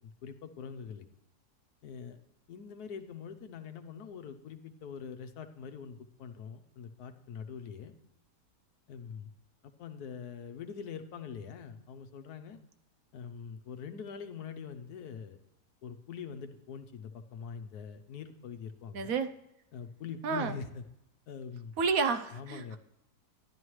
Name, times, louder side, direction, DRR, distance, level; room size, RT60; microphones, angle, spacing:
voice 1, 0.2-1.1 1.8-2.2 2.5-7.9 8.9-9.3 9.8-12.6 13.1-15.4 15.8-19.1 19.7-20.8 21.3-21.7 22.3-22.8, left 6 dB, 75° left, 9 dB, 1.3 m, -43 dB
voice 2, 18.9-19.3 20.2-20.5 21.8-22.8, right 5 dB, 70° right, 9 dB, 1.0 m, -30 dB
11.5 x 11.0 x 3.1 m, 0.82 s
omnidirectional pair, 1.7 m